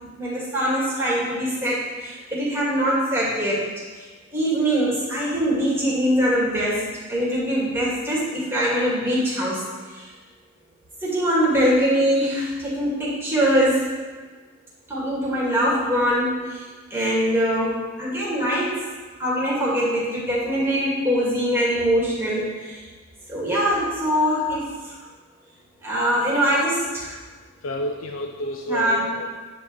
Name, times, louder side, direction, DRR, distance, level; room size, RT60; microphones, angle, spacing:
voice 1, 0.0-3.6 3.9-6.8 7.1-9.6 9.9-10.1 11.0-13.9 14.9-18.8 19.2-22.8 23.3-24.9 25.8-27.1 28.7-29.2, equal, 10° right, -7 dB, 2.1 m, -23 dB
voice 2, 27.6-29.3, left 1 dB, 75° left, 3 dB, 0.5 m, -30 dB
9.5 x 4.6 x 6.1 m, 1.4 s
head